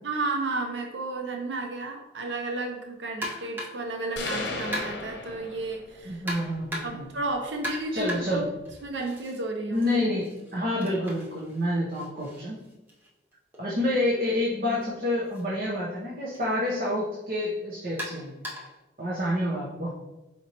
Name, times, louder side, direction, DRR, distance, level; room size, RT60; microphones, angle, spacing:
voice 1, 0.0-6.2 6.8-8.4 8.8-9.9, right 2 dB, 85° right, 2 dB, 0.6 m, -32 dB
sound 1, 3.2-3.9 4.7-5.2 6.3-7.1 7.6-9.4 9.7-13.6 14.7-14.9 15.3-15.4 16.3-16.5 18.0-18.8, equal, 10° right, 0.8 m, -38 dB
sound 2, 4.2-6.1, left 3 dB, 80° left, 0.7 m, -35 dB
voice 2, 6.0-7.1 7.9-8.4 9.7-12.6 13.6-18.3 19.0-20.0, left 1 dB, 50° right, -5 dB, 0.8 m, -28 dB
4.3 x 4.1 x 2.9 m, 1.0 s
head